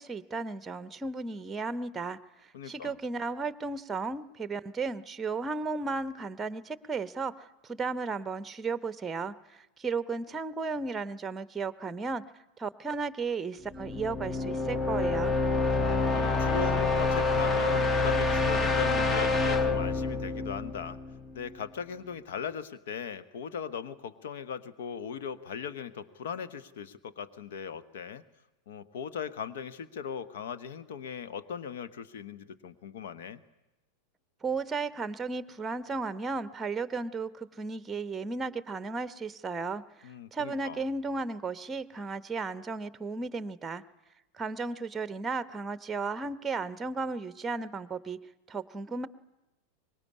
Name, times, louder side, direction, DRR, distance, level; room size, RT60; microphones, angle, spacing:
voice 1, 0.0-12.2 12.6-15.3 34.4-43.8 44.3-48.2 48.5-49.1, right 4 dB, 15° right, 15 dB, 0.9 m, -34 dB
voice 2, 2.5-2.9 15.7-21.0 21.3-28.2 28.7-33.4 40.0-40.8, left 7 dB, 55° left, 13 dB, 1.2 m, -38 dB
sound 1, 13.7-21.5, left 3 dB, 20° left, 1.1 m, -27 dB
24.0 x 21.0 x 9.7 m, 1.0 s
figure-of-eight pair, 90°, 0 cm